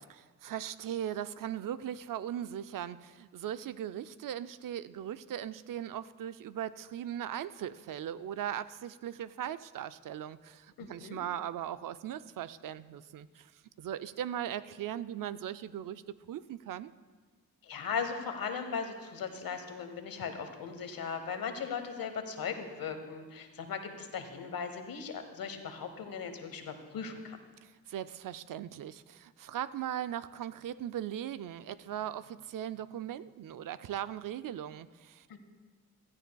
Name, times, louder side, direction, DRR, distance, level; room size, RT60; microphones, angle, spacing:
voice 1, 0.1-13.5 13.8-16.0 16.3-16.9 27.6-35.4, right 10 dB, 70° right, 14 dB, 0.5 m, -39 dB
voice 2, 10.8-11.2 17.6-27.4 35.3-35.4, left 6 dB, 90° left, 7 dB, 1.1 m, -38 dB
16.0 x 13.5 x 2.3 m, 1.4 s
cardioid pair, 75°, 34 cm